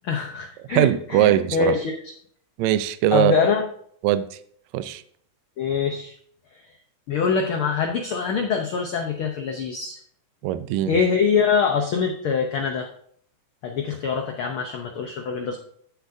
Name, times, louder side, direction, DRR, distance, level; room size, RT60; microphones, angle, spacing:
voice 1, 0.0-2.0 3.1-3.6 5.6-6.1 7.1-10.0 10.9-12.9 13.6-15.6, left 6 dB, 85° left, 4 dB, 1.1 m, -24 dB
voice 2, 0.7-1.8 2.6-3.3 4.0-4.4 4.7-5.0 10.4-11.0, right 12 dB, 75° right, 12 dB, 1.8 m, -21 dB
13.5 x 7.0 x 2.7 m, 0.62 s
omnidirectional pair, 3.6 m